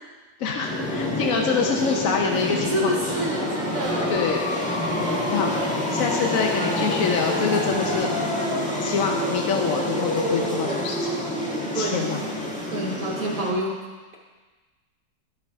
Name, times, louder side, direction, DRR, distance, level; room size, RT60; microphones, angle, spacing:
voice 1, 0.4-2.9 4.1-4.4 5.3-5.5 5.9-8.2 8.8-11.1 11.7-12.6, left 5 dB, 60° left, 1 dB, 1.1 m, -25 dB
sound 1, 0.6-13.5, left 1 dB, 5° left, 1.4 m, -27 dB
voice 2, 2.7-4.2 11.7-12.1 12.7-13.8, right 1 dB, 55° right, -3 dB, 1.3 m, -27 dB
12.5 x 4.7 x 4.7 m, 1.4 s
omnidirectional pair, 1.8 m